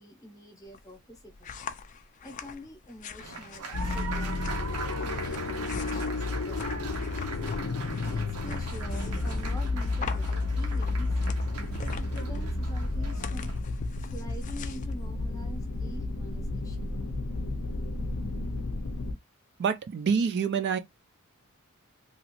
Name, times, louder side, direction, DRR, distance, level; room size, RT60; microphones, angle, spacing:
voice 1, 0.0-1.5 2.2-6.9 8.1-11.1 11.8-13.5 14.1-16.9, equal, 15° left, 0.7 m, -46 dB
sound 1, 0.6-16.0, left 5 dB, 35° left, 0.3 m, -43 dB
Applause, 3.2-13.6, right 4 dB, 85° right, 0.7 m, -41 dB
sound 2, 3.7-19.1, left 2 dB, 85° left, 0.5 m, -32 dB
voice 2, 19.6-20.8, right 6 dB, 50° right, 0.3 m, -26 dB
2.9 x 2.3 x 2.9 m
head